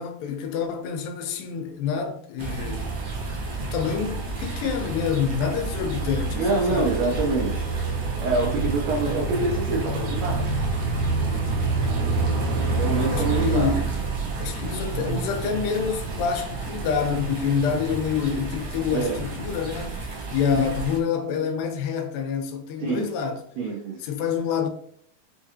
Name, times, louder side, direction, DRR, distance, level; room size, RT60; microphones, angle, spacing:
voice 1, 0.0-2.9 3.6-7.0 13.1-13.9 14.4-23.4 24.0-24.7, left 7 dB, 85° left, 2.3 m, -27 dB
sound 1, 2.4-21.0, right 3 dB, 65° right, 1.5 m, -28 dB
voice 2, 6.3-7.7 8.2-10.5 12.8-13.7 18.9-19.2 22.8-23.1 23.6-24.0, right 3 dB, 85° right, 1.5 m, -26 dB
5.7 x 2.4 x 2.8 m
omnidirectional pair, 4.0 m